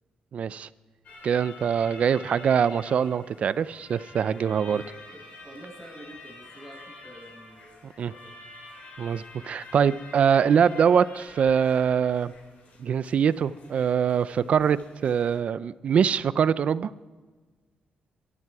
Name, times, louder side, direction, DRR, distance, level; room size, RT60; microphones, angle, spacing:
voice 1, 0.3-0.7 1.2-4.8 8.0-8.1 9.0-12.3 12.8-16.9, right 7 dB, 60° right, 17 dB, 0.5 m, -23 dB
sound 1, 1.0-15.4, left 3 dB, 70° left, 3.6 m, -48 dB
voice 2, 4.6-8.3, equal, 15° left, -1 dB, 6.2 m, -47 dB
22.0 x 12.5 x 4.8 m, 1.4 s
cardioid pair, 100°, 3 cm